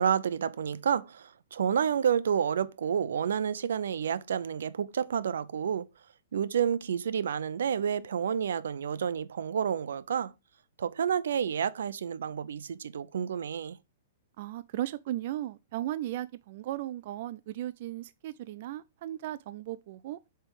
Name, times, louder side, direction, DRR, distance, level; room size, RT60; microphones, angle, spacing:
voice 1, 0.0-5.9 6.3-10.3 10.8-13.8, right 8 dB, 85° right, 0.6 m, -29 dB
voice 2, 14.4-20.2, right 13 dB, 45° right, 0.3 m, -36 dB
7.5 x 3.4 x 4.8 m
hypercardioid pair, 165°, 0 cm